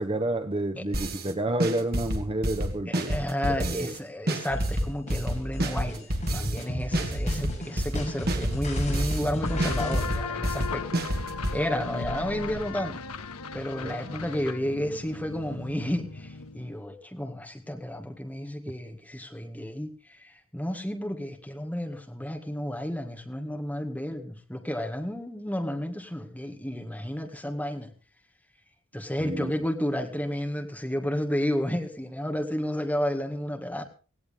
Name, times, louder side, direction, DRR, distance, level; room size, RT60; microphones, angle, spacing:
voice 1, 0.0-3.2 3.4-3.9 13.8-14.0 29.2-29.5, right 1 dB, 25° right, 8 dB, 0.8 m, -29 dB
sound 1, 0.9-1.3 1.6-4.0 4.3-6.6 6.9-9.3 9.6-11.6, right 1 dB, 45° right, 2.4 m, -29 dB
voice 2, 2.9-10.9 11.5-13.0 13.5-27.9 28.9-33.8, left 1 dB, 5° left, 4 dB, 2.0 m, -32 dB
sound 2, 4.5-10.1, equal, 35° left, 7.0 m, -32 dB
sound 3, 9.4-16.8, left 4 dB, 85° left, 1.2 m, -36 dB
17.5 x 17.0 x 3.6 m, 0.35 s
head